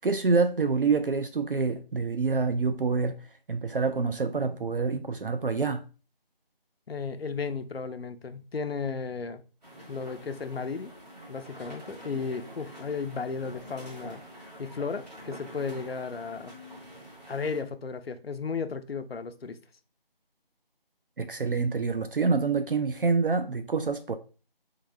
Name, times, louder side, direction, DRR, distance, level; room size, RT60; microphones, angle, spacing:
voice 1, 0.0-3.2 3.5-5.8 21.2-24.2, right 4 dB, 65° right, 0.5 m, -26 dB
voice 2, 6.9-9.4 9.9-10.9 11.3-16.5 17.3-19.6, left 5 dB, 80° left, 0.6 m, -34 dB
sound 1, 9.6-17.6, equal, 45° right, 1.8 m, -46 dB
3.8 x 3.6 x 3.4 m
figure-of-eight pair, 175°, 30 cm